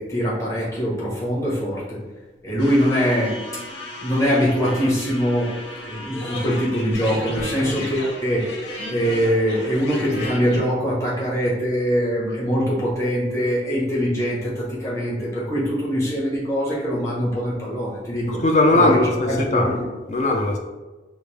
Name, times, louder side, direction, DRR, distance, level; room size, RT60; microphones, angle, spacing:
voice 1, 0.0-2.0 2.4-3.5 4.0-5.6 5.8-8.5 8.9-18.4 18.7-19.8, equal, 15° left, -7 dB, 1.1 m, -23 dB
sound 1, 2.6-10.6, left 1 dB, 85° left, 0.7 m, -34 dB
voice 2, 18.3-19.8 20.1-20.6, left 2 dB, 40° left, 2 dB, 0.4 m, -19 dB
5.0 x 2.1 x 3.3 m, 1.2 s
head